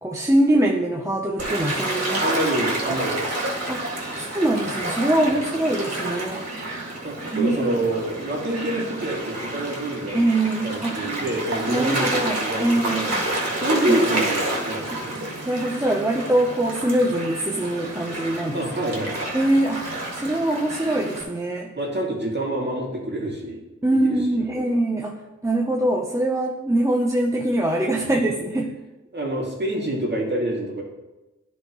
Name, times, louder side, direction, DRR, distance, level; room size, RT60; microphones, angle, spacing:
voice 1, 0.0-2.2 2.9-3.0 3.7-6.5 7.3-7.8 10.1-11.0 11.7-13.3 13.9-14.2 15.4-18.6 19.3-21.7 23.8-28.7, right 1 dB, 10° right, -1 dB, 0.8 m, -23 dB
Gull seagull / Waves surf, 1.4-21.2, right 1 dB, 55° right, 2.1 m, -29 dB
voice 2, 2.1-3.6 5.3-5.4 7.0-10.2 10.6-15.2 18.5-19.2 21.8-23.6 23.9-24.7 28.0-28.1 29.1-30.8, right 1 dB, 35° right, -4 dB, 2.4 m, -27 dB
10.5 x 4.6 x 3.1 m, 1.1 s
cardioid pair, 50°, 31 cm